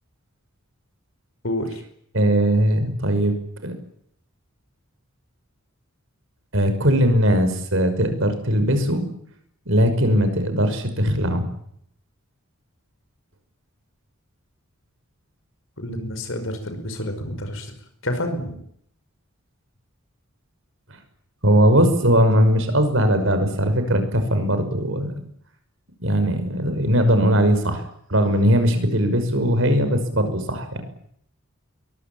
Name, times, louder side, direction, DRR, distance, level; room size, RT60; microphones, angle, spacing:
voice 1, 1.4-1.8 15.8-17.7 18.0-18.6, left 1 dB, 60° left, 7 dB, 5.1 m, -28 dB
voice 2, 2.1-3.3 3.6-3.7 6.5-9.0 9.7-11.4 21.4-25.2 26.0-27.8 28.1-30.8, equal, 60° right, 9 dB, 6.0 m, -19 dB
23.0 x 22.5 x 9.0 m, 0.69 s
head